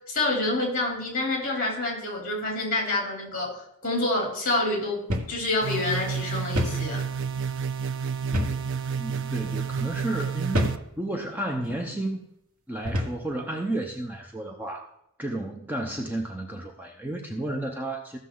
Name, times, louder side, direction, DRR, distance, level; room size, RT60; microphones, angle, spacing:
voice 1, 0.1-7.0, left 2 dB, 40° left, -1 dB, 3.6 m, -27 dB
sound 1, 5.1-5.4 5.7-5.8 6.6-6.9 8.3-8.7 9.4-9.6 10.5-10.9 11.6-11.8 12.9-13.2, equal, 80° right, 1.6 m, -27 dB
sound 2, 5.6-10.8, right 6 dB, 55° right, 0.4 m, -30 dB
voice 2, 8.9-12.2 12.7-14.9 15.2-18.2, right 1 dB, 10° right, 1 dB, 0.7 m, -32 dB
15.5 x 6.5 x 3.9 m, 0.79 s
head